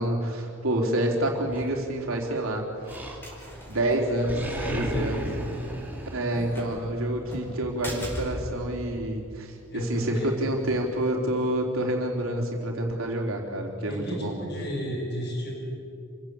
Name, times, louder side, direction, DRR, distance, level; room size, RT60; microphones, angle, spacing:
voice 1, 0.0-3.0 3.7-4.4 4.7-5.3 6.1-14.4, right 1 dB, 70° right, 1 dB, 3.9 m, -28 dB
Animal, 1.5-2.3 2.8-3.6 3.9-6.9, right 1 dB, 10° right, 2.7 m, -36 dB
sound 1, 1.9-11.5, equal, 10° left, 5.3 m, -42 dB
voice 2, 4.3-5.7 6.3-6.5 9.7-10.3 13.9-15.5, equal, 50° left, -1 dB, 6.7 m, -33 dB
27.5 x 16.0 x 8.6 m, 2.5 s
head